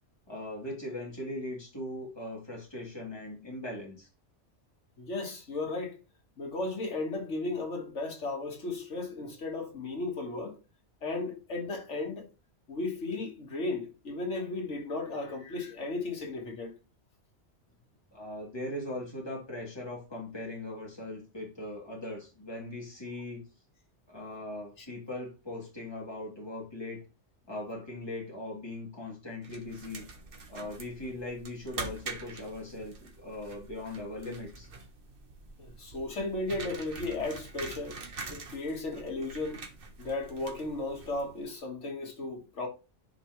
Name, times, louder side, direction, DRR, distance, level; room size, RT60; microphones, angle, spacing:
voice 1, 0.3-4.1 18.1-23.5 24.1-27.0 27.5-30.0 30.5-34.7, left 1 dB, 20° left, 2.8 m, -39 dB
voice 2, 5.0-6.0 6.4-10.6 11.0-12.3 12.7-16.7 24.8-24.9 35.6-38.0 38.3-39.6 40.0-42.7, left 2 dB, 80° left, 2.0 m, -35 dB
sound 1, 29.4-41.5, right 3 dB, 50° right, 1.3 m, -45 dB
10.0 x 4.8 x 3.1 m
omnidirectional pair, 1.2 m